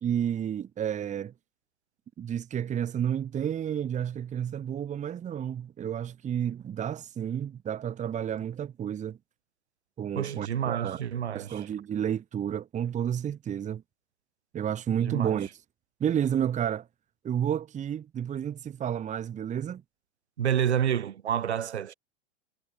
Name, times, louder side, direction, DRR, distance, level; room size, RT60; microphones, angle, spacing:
voice 1, 0.0-1.3 2.2-9.2 10.0-11.0 11.3-13.8 14.5-15.5 16.0-16.9 17.2-19.8, right 9 dB, 20° right, 1.4 m, -31 dB
voice 2, 10.1-11.7 15.0-15.4 20.4-21.9, right 9 dB, 70° right, 2.2 m, -29 dB
figure-of-eight pair, 90°, 34 cm